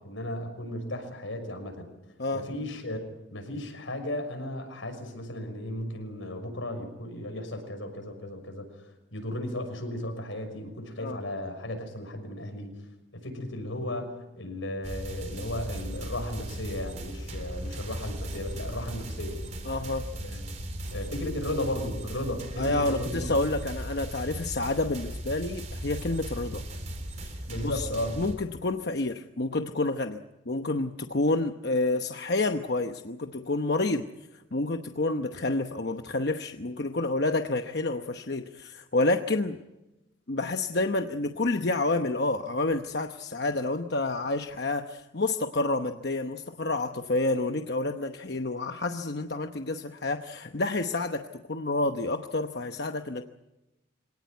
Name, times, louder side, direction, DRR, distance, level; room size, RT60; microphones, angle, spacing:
voice 1, 0.0-1.9 2.3-3.0 3.3-8.6 9.1-12.7 13.1-19.4 20.2-20.5 20.9-23.3 27.5-28.2, left 1 dB, 85° left, 5 dB, 6.2 m, -35 dB
sound 1, 14.8-28.3, right 1 dB, 35° right, 3.6 m, -37 dB
voice 2, 19.6-20.1 22.6-26.6 27.2-27.3 27.6-27.9 28.2-30.2 30.5-34.1 34.3-39.6 40.3-53.2, left 2 dB, 55° left, 6 dB, 0.9 m, -29 dB
25.5 x 18.0 x 9.4 m, 0.99 s
head